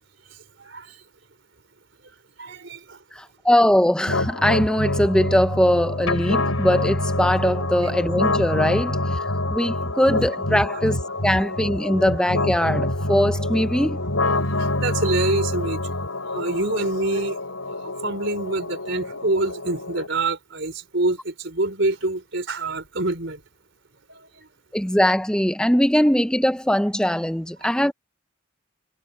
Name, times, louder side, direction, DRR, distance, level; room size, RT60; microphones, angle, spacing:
voice 1, 0.6-1.0 2.4-3.0 10.7-10.8 11.3-11.4 14.6-15.8 16.3-17.4 17.8-23.4 24.1-24.3 27.6-27.7, right 2 dB, 55° right, 4.5 m, -26 dB
voice 2, 3.1-9.2 9.5-11.0 11.2-14.0 24.7-27.9, equal, 5° left, 0.8 m, -21 dB
sound 1, 4.1-20.1, left 2 dB, 80° left, 7.5 m, -26 dB
head